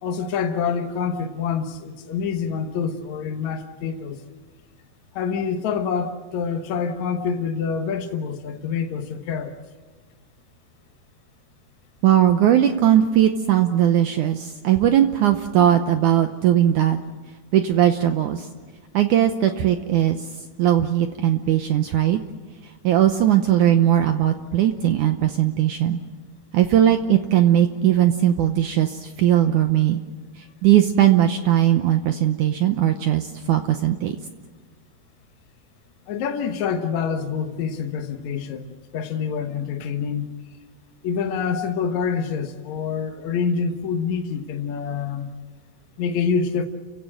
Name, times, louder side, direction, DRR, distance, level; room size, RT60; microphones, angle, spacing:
voice 1, 0.0-4.2 5.1-9.6 36.1-40.4 41.0-45.4 46.0-46.7, left 6 dB, 65° left, 4 dB, 2.0 m, -26 dB
voice 2, 12.0-17.0 17.5-18.5 18.9-20.2 20.6-22.2 22.8-26.0 26.5-30.0 30.6-34.2, right 11 dB, 80° right, 7 dB, 1.8 m, -19 dB
29.5 x 16.0 x 7.7 m, 1.4 s
omnidirectional pair, 4.6 m